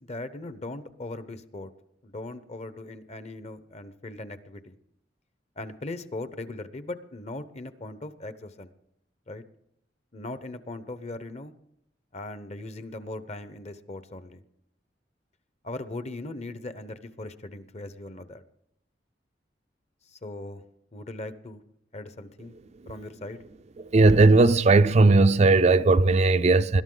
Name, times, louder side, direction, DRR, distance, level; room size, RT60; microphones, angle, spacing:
voice 1, 0.1-1.7 2.0-4.8 5.6-8.7 9.3-9.4 10.1-11.5 12.1-14.4 15.6-18.4 20.1-20.6 20.9-21.6 21.9-22.5 22.9-23.4, left 2 dB, 40° left, 0.9 m, -39 dB
voice 2, 23.9-26.8, right 3 dB, 40° right, 0.4 m, -17 dB
21.0 x 12.0 x 3.9 m
head